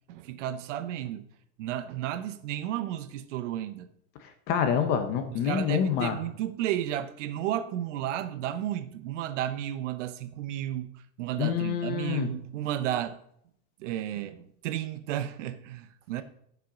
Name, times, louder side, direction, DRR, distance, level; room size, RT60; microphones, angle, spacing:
voice 1, 0.1-1.2 1.6-3.9 5.3-13.2 13.8-16.2, right 12 dB, 55° right, 0.9 m, -33 dB
voice 2, 4.5-6.2 11.4-12.3, left 8 dB, 25° left, 0.7 m, -26 dB
15.5 x 5.8 x 3.8 m
supercardioid pair, 175°, 43 cm